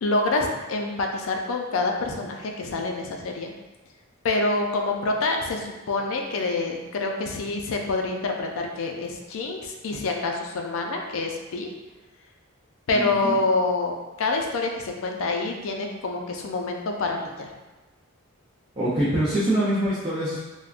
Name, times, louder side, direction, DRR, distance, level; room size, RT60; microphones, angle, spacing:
voice 1, 0.0-3.5 4.2-11.7 12.9-17.5, left 3 dB, 70° left, 2 dB, 0.4 m, -27 dB
voice 2, 12.9-13.3 18.8-20.4, right 1 dB, 25° right, -10 dB, 0.4 m, -24 dB
3.5 x 2.1 x 2.4 m, 1.2 s
head